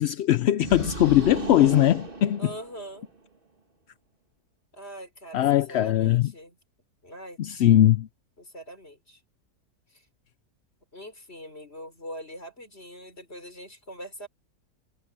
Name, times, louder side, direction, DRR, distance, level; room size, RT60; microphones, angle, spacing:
voice 1, 0.0-2.4 5.3-6.3 7.4-8.1, left 12 dB, 70° left, 0.6 m, -20 dB
sound 1, 0.6-3.1, right 3 dB, 35° right, 2.4 m, -35 dB
voice 2, 2.4-3.1 4.7-6.6 7.0-7.4 8.4-9.2 9.9-10.0 10.9-14.3, right 1 dB, 40° left, 5.5 m, -42 dB
omnidirectional pair, 1.6 m